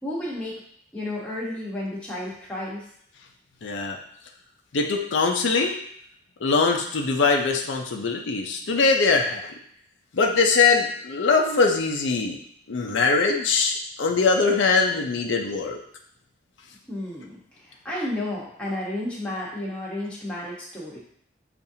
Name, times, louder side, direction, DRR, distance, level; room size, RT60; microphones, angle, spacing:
voice 1, 0.0-0.6 0.9-2.8 16.9-21.0, left 1 dB, 5° left, -6 dB, 1.1 m, -32 dB
voice 2, 3.6-4.0 4.7-5.8 6.4-9.5 10.1-12.4 12.7-15.8, left 4 dB, 90° left, 2 dB, 0.6 m, -22 dB
7.0 x 2.5 x 2.7 m, 0.65 s
head